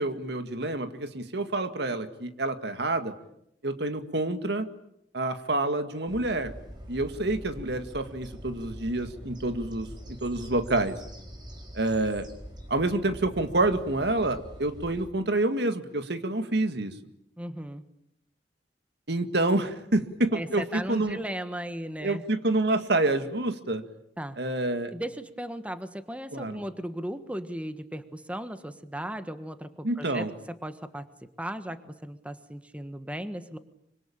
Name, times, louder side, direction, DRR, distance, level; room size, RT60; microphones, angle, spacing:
voice 1, 0.0-3.1 3.6-4.7 5.1-6.5 6.9-9.9 10.2-11.0 11.7-12.3 12.7-16.9 19.1-21.2 22.0-23.8 24.4-24.9 26.3-26.6 29.8-30.3, right 2 dB, 70° right, 9 dB, 2.1 m, -28 dB
sound 1, 6.1-15.1, equal, 25° right, 4.7 m, -44 dB
voice 2, 17.4-17.8 20.3-22.2 24.2-24.4 24.9-30.3 30.6-31.1 31.4-33.6, right 1 dB, 10° right, 10 dB, 1.4 m, -36 dB
25.5 x 25.5 x 8.8 m, 0.77 s
head